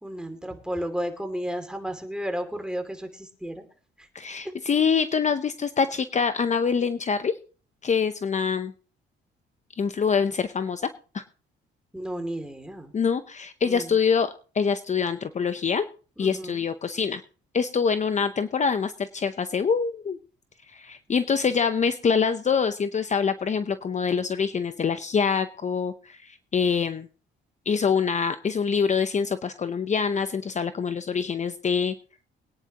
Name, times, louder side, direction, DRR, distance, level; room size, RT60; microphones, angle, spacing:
voice 1, 0.0-3.6 4.4-4.5 11.9-12.9 13.6-13.9 16.2-16.6, equal, 5° right, 6 dB, 2.6 m, -33 dB
voice 2, 4.1-7.4 7.8-8.7 9.8-10.9 11.1-11.2 12.9-15.9 16.2-17.2 17.5-20.2 20.7-27.1 27.7-31.9, left 6 dB, 35° left, 11 dB, 0.7 m, -25 dB
23.0 x 9.9 x 3.0 m, 0.38 s
cardioid pair, 90°, 20 cm